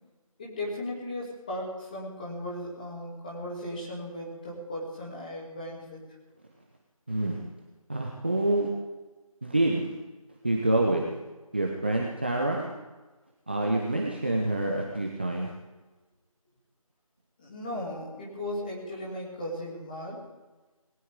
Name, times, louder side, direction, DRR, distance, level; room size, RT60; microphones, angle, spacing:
voice 1, 0.4-6.0 17.4-20.2, left 1 dB, 15° left, -4 dB, 2.6 m, -36 dB
voice 2, 7.1-7.4 7.9-8.7 9.4-9.9 10.4-11.1 11.5-12.7 13.5-15.5, right 1 dB, 20° right, 0 dB, 0.8 m, -27 dB
19.5 x 17.5 x 3.7 m, 1.2 s
figure-of-eight pair, 170°, 18 cm